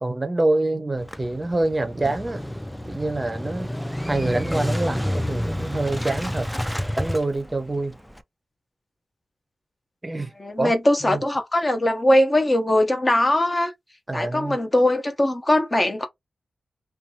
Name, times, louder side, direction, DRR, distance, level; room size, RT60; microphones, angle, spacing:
voice 1, 0.0-2.4 2.8-3.7 4.0-6.5 7.0-8.0 10.0-10.8 11.0-11.2 14.1-14.6, right 2 dB, 20° right, 0.7 m, -26 dB
Motorcycle / Engine starting, 1.0-8.2, equal, 5° left, 0.3 m, -29 dB
voice 2, 10.4-13.7 14.1-16.0, left 1 dB, 25° left, 0.7 m, -20 dB
2.6 x 2.3 x 2.7 m
wide cardioid pair, 105°, 0 cm